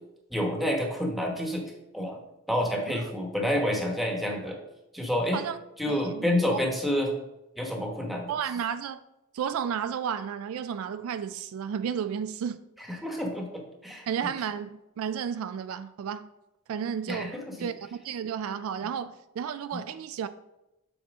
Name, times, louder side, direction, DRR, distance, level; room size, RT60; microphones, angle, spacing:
voice 1, 0.3-1.6 1.9-2.2 2.5-4.6 4.9-5.4 5.8-7.1 7.6-8.3 12.9-14.1 17.1-17.5 19.7-19.8, left 1 dB, ahead, 1.0 m, -28 dB
voice 2, 5.9-6.6 8.3-9.0 9.3-12.6 14.1-16.3 16.7-20.3, right 8 dB, 70° right, 0.3 m, -33 dB
7.2 x 4.3 x 3.5 m
head